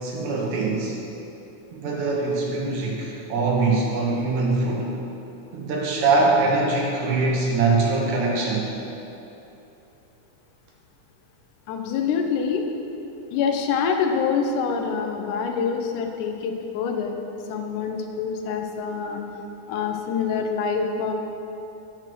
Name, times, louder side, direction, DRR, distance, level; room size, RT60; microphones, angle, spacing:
voice 1, 0.0-0.9 1.7-4.9 5.5-8.7, right 3 dB, 70° right, -2 dB, 2.5 m, -23 dB
voice 2, 11.7-12.6 13.3-17.1 17.5-19.2 19.7-21.1, left 6 dB, 85° left, 4 dB, 2.3 m, -25 dB
9.2 x 5.8 x 6.2 m, 3.0 s
omnidirectional pair, 3.6 m